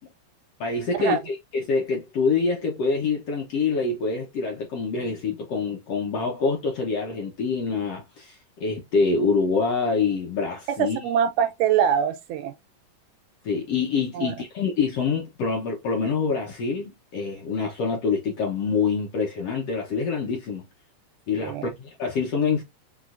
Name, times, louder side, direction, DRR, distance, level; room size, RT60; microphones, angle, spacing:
voice 1, 0.6-11.1 13.4-20.7 21.3-22.6, left 4 dB, 70° left, 1.5 m, -26 dB
voice 2, 10.8-12.5 14.1-14.3 21.4-21.7, right 8 dB, 80° right, 1.9 m, -23 dB
6.1 x 2.5 x 2.5 m
omnidirectional pair, 3.8 m